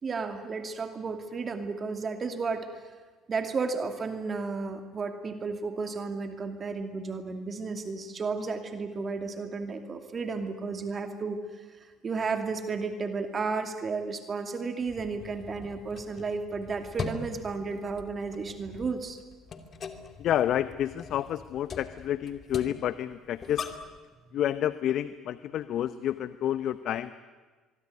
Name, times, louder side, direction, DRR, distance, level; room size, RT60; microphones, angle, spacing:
voice 1, 0.0-2.7 3.3-11.6 12.0-19.2, right 4 dB, 35° right, 6 dB, 2.6 m, -33 dB
sound 1, 14.9-24.0, left 5 dB, 45° left, 2.6 m, -42 dB
voice 2, 20.2-23.7 24.3-27.1, left 11 dB, 60° left, 14 dB, 0.8 m, -29 dB
24.0 x 23.5 x 9.7 m, 1.4 s
hypercardioid pair, 65°, 0 cm